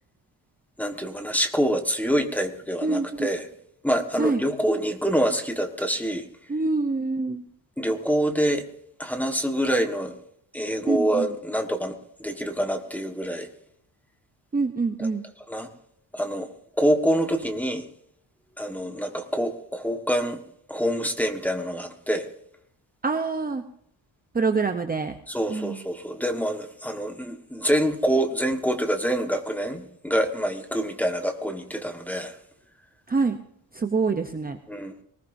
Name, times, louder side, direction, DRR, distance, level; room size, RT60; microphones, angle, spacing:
voice 1, 0.8-3.5 3.8-6.2 7.8-8.6 9.0-10.1 10.5-11.9 12.2-13.5 15.0-15.1 15.5-15.7 16.1-16.5 16.8-17.8 18.6-20.4 20.7-22.3 25.3-32.4 34.7-34.9, equal, 5° left, 5 dB, 1.4 m, -26 dB
voice 2, 2.8-3.3 4.2-4.4 6.5-7.4 10.8-11.3 14.5-15.2 23.0-23.6 24.3-25.2 25.5-25.8 33.1-33.4 33.7-34.6, right 4 dB, 20° right, 7 dB, 0.7 m, -25 dB
20.0 x 19.5 x 2.7 m, 0.69 s
wide cardioid pair, 180°, 46 cm